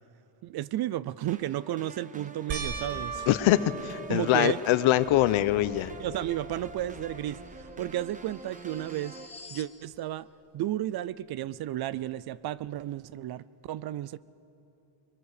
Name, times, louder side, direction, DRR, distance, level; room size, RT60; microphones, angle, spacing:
voice 1, 0.4-3.3 4.1-4.6 6.0-9.2 9.5-10.3 10.5-14.2, right 13 dB, 50° right, 19 dB, 0.5 m, -33 dB
sound 1, 1.3-9.3, right 3 dB, 15° right, 0.8 m, -47 dB
sound 2, 2.5-5.1 5.7-6.3 6.6-6.7 9.9-10.0, right 4 dB, 70° right, 2.6 m, -38 dB
voice 2, 3.3-5.9, left 14 dB, 75° left, 14 dB, 0.9 m, -23 dB
sound 3, 4.9-9.8, left 3 dB, 15° left, 1.4 m, -49 dB
29.0 x 21.5 x 6.7 m, 3.0 s
cardioid pair, 135°, 48 cm